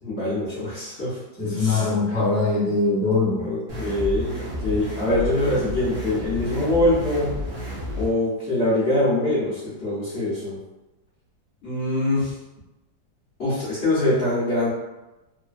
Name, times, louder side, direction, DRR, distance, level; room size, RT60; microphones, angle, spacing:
voice 1, 0.0-1.2 1.6-1.9 3.4-7.4 8.0-10.6 11.6-12.3 13.4-14.7, left 1 dB, 55° left, -11 dB, 0.7 m, -24 dB
voice 2, 1.4-3.4, left 3 dB, 15° right, -10 dB, 0.3 m, -22 dB
sound 1, 3.7-8.1, equal, 65° right, 0.6 m, -31 dB
3.1 x 2.1 x 2.4 m, 1.0 s
omnidirectional pair, 2.0 m